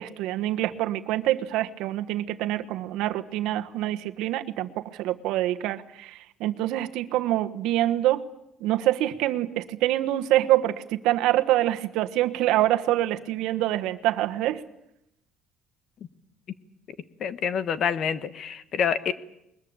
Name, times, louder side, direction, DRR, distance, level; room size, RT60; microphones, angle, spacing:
voice 1, 0.0-8.2 8.6-14.6, right 14 dB, 80° right, 9 dB, 1.3 m, -25 dB
voice 2, 17.2-19.1, left 7 dB, 45° left, 14 dB, 1.2 m, -27 dB
21.5 x 21.0 x 8.9 m, 0.82 s
cardioid pair, 155°, 0 cm